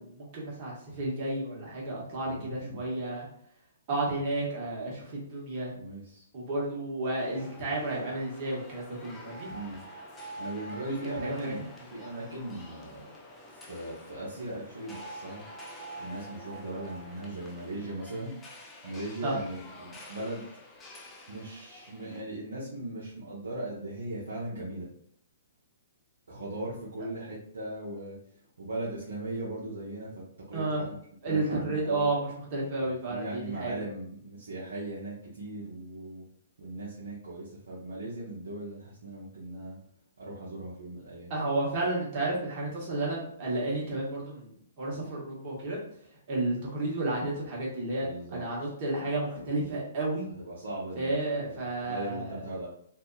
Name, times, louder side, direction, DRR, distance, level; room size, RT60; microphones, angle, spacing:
voice 1, 0.0-3.3 3.9-5.7 6.3-9.5 10.7-11.5 19.2-19.4 30.5-30.8 31.2-33.7 41.3-45.8 46.3-50.3 51.0-52.4, right 2 dB, 40° right, -4 dB, 1.1 m, -32 dB
voice 2, 2.2-2.9 5.7-6.3 9.5-9.8 10.4-11.6 11.9-13.1 13.5-15.4 15.7-18.3 18.8-20.5 21.3-24.9 26.3-28.2 28.6-31.0 31.3-32.1 32.8-36.2 36.6-39.8 40.2-41.3 48.0-48.4 50.4-52.7, right 1 dB, 75° right, -7 dB, 0.7 m, -39 dB
sound 1, 7.2-22.2, equal, 15° left, 0.5 m, -47 dB
2.7 x 2.3 x 2.3 m, 0.66 s
figure-of-eight pair, 120°, 0 cm